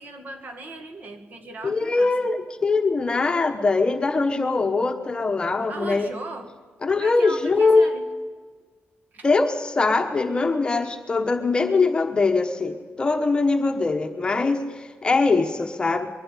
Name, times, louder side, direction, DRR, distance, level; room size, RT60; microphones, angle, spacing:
voice 1, 0.0-2.1 5.7-6.5 6.9-8.1 9.1-9.3, right 2 dB, 45° right, 6 dB, 2.2 m, -38 dB
voice 2, 1.6-6.1 6.8-7.9 9.2-16.1, left 3 dB, 25° left, 5 dB, 1.1 m, -22 dB
22.5 x 12.0 x 9.8 m, 1.5 s
wide cardioid pair, 180°, 4 cm